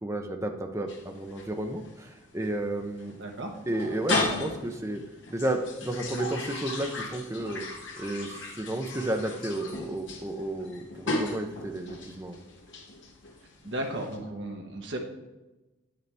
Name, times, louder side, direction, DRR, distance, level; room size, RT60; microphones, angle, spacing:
voice 1, 0.0-3.2 3.7-5.0 5.3-7.7 8.0-12.4, right 1 dB, 15° right, 4 dB, 0.6 m, -32 dB
sound 1, 0.9-14.2, left 2 dB, 65° left, 1.3 m, -36 dB
voice 2, 3.2-3.5 13.6-15.0, right 1 dB, 60° right, 1 dB, 1.1 m, -34 dB
8.9 x 6.7 x 3.4 m, 1.0 s
head